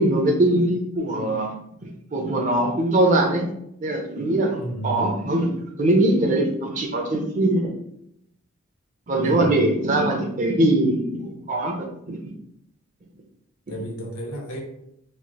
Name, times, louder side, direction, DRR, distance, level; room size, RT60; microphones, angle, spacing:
voice 1, 0.0-1.5 1.8-3.4 3.8-5.5 5.8-7.7 9.1-12.3, right 1 dB, 35° right, 1 dB, 0.5 m, -22 dB
voice 2, 4.6-5.0 9.2-9.5 13.7-14.6, right 1 dB, 80° left, 1 dB, 0.8 m, -32 dB
3.1 x 2.8 x 2.2 m, 0.76 s
head